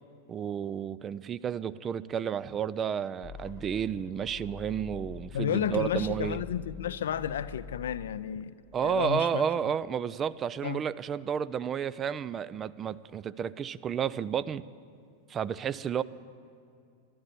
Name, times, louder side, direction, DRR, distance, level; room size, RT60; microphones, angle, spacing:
voice 1, 0.3-6.4 8.7-14.6 15.3-16.0, right 8 dB, 25° right, 0.4 m, -31 dB
sound 1, 3.2-9.2, left 6 dB, 45° left, 1.1 m, -46 dB
voice 2, 5.3-8.5 8.8-9.5 10.6-10.8, left 9 dB, 60° left, 0.4 m, -32 dB
12.5 x 11.5 x 9.5 m
figure-of-eight pair, 90°, 0 cm